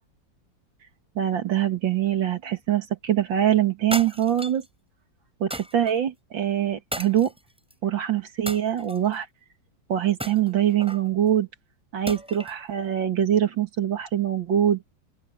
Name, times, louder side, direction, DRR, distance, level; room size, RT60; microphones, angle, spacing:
voice 1, 1.2-4.6 5.4-7.3 7.8-9.3 9.9-11.5 11.9-14.8, right 10 dB, 85° right, 2.6 m, -23 dB
sound 1, 3.9-4.7 5.5-5.9 6.9-7.7 8.5-9.2 10.2-11.1 12.1-12.6, equal, 5° right, 5.4 m, -35 dB
open air
omnidirectional pair, 2.0 m